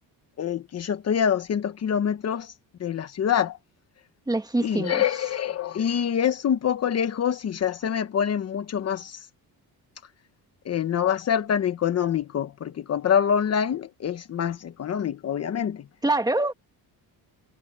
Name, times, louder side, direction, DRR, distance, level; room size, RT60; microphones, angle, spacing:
voice 1, 0.4-2.5 2.8-3.6 4.6-9.2 10.7-15.8, left 8 dB, 45° left, 1.1 m, -25 dB
voice 2, 4.3-5.0 16.0-16.5, right 2 dB, 10° right, 1.5 m, -24 dB
cardioid pair, 160°, 37 cm